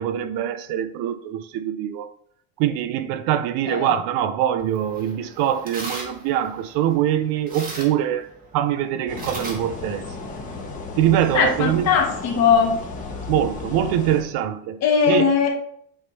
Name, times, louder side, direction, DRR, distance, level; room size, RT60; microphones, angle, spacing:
voice 1, 0.0-2.1 2.6-10.2 11.0-11.9 13.3-14.8 15.1-15.3, right 10 dB, 75° right, 0.6 m, -23 dB
sound 1, 4.6-10.7, right 2 dB, 25° right, 1.2 m, -39 dB
sound 2, 9.1-14.2, left 3 dB, 20° left, 1.1 m, -34 dB
voice 2, 11.3-12.8 14.8-15.5, left 6 dB, 45° left, 1.6 m, -19 dB
8.7 x 3.6 x 4.1 m
cardioid pair, 175°, 36 cm